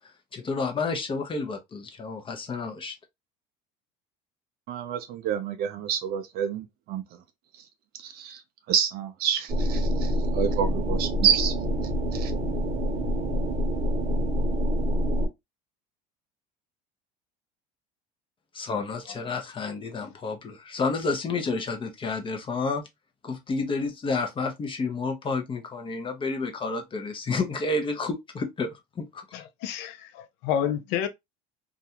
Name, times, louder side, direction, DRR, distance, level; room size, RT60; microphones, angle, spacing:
voice 1, 0.3-2.9 18.5-22.8 23.2-29.2, left 3 dB, 25° left, 0.6 m, -30 dB
voice 2, 4.7-7.0 8.0-8.4 8.7-11.5 12.1-12.3, right 8 dB, 55° right, 0.4 m, -28 dB
sound 1, 9.5-15.3, equal, 35° right, 0.8 m, -26 dB
voice 3, 29.3-31.1, left 9 dB, 70° left, 0.4 m, -29 dB
2.4 x 2.2 x 2.7 m
supercardioid pair, 105°, 19 cm